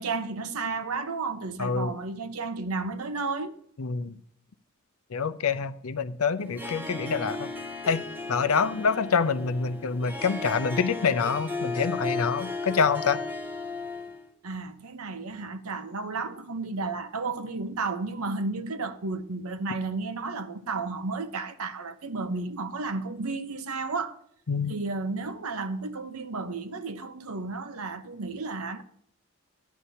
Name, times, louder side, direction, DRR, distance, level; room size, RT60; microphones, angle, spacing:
voice 1, 0.0-3.6 14.4-24.2 24.7-28.8, right 3 dB, 85° right, 0.8 m, -32 dB
voice 2, 1.6-1.9 3.8-4.2 5.1-7.5 7.9-8.0 8.3-13.2 24.5-24.8, left 5 dB, 80° left, 0.6 m, -26 dB
Harp, 6.4-14.3, left 3 dB, 10° right, 0.7 m, -35 dB
14.0 x 10.0 x 2.8 m
head